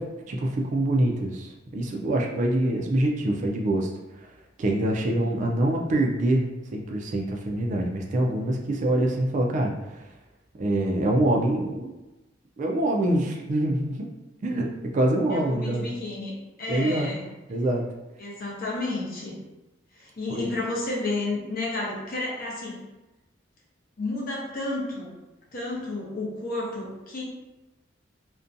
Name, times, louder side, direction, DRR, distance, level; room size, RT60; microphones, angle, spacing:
voice 1, 0.0-3.9 4.6-10.0 10.6-11.9 12.6-14.1 14.4-15.9 16.7-17.1 17.5-17.9 20.3-20.5, right 1 dB, 40° right, 1 dB, 0.3 m, -25 dB
voice 2, 15.3-17.3 18.2-19.4 19.9-22.8 24.0-25.1 25.5-27.2, left 2 dB, 50° left, -4 dB, 0.7 m, -31 dB
2.5 x 2.2 x 2.5 m, 1.0 s
head